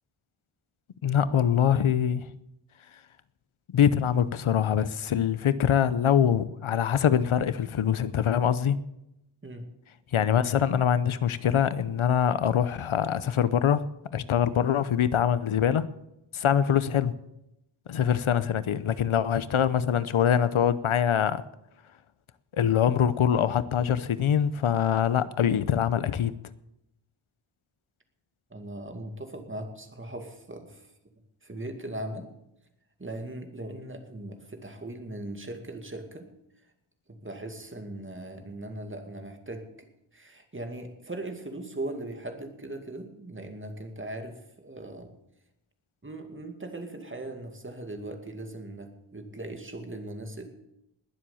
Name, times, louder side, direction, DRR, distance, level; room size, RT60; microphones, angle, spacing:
voice 1, 1.0-2.3 3.7-8.8 10.1-13.8 14.1-15.9 16.3-17.1 17.9-21.4 22.5-26.3, left 9 dB, 85° left, 15 dB, 0.8 m, -24 dB
voice 2, 28.5-30.9 31.4-32.3 33.0-36.3 37.1-39.7 40.1-45.1 46.0-50.5, right 1 dB, 25° right, 5 dB, 2.2 m, -39 dB
20.5 x 7.7 x 7.0 m, 0.85 s
wide cardioid pair, 115°, 47 cm